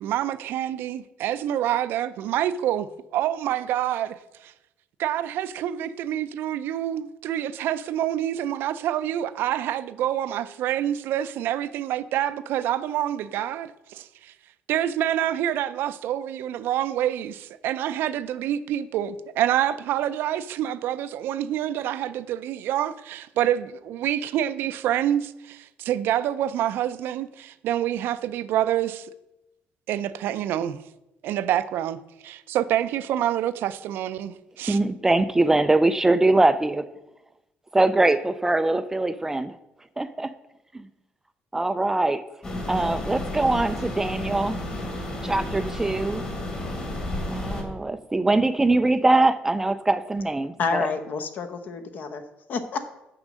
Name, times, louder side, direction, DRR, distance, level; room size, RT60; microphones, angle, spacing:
voice 1, 0.0-4.5 5.0-14.3 14.7-29.1 29.9-30.8 31.2-34.8, right 11 dB, 70° right, 0.4 m, -27 dB
voice 2, 34.7-36.9 37.7-39.5 40.0-40.3 40.7-40.9 41.5-42.2 42.7-44.6 45.2-46.2 47.3-50.9, right 2 dB, 10° right, 0.3 m, -22 dB
sound 1, 42.4-47.6, left 1 dB, 25° left, 1.8 m, -31 dB
voice 3, 50.6-52.2 52.5-52.8, left 5 dB, 50° left, 0.9 m, -28 dB
6.5 x 6.1 x 6.3 m
cardioid pair, 135°, 4 cm